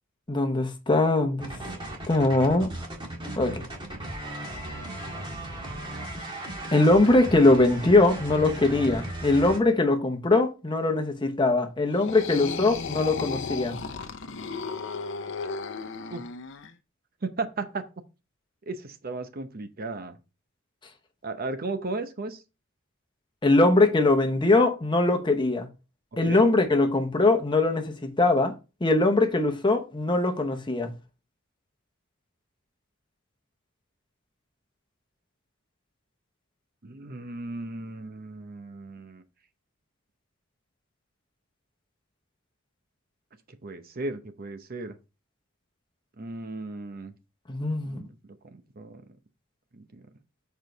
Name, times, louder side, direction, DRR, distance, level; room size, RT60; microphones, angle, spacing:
voice 1, 0.3-1.5 2.1-2.7 3.4-3.6 6.7-13.8 23.4-25.7 26.2-28.5 28.8-30.9 47.5-48.0, left 2 dB, 20° left, 0.9 m, -22 dB
sound 1, 1.4-9.6, right 1 dB, 25° right, 1.7 m, -36 dB
sound 2, 11.9-16.7, left 4 dB, 60° left, 0.7 m, -34 dB
voice 2, 17.2-17.8 18.7-20.2 21.2-22.4 26.3-26.5 36.8-39.2 43.6-44.9 46.2-47.1 47.8-48.1 48.4-49.0 49.7-50.0, right 3 dB, 45° right, 0.7 m, -35 dB
7.4 x 4.6 x 3.9 m
head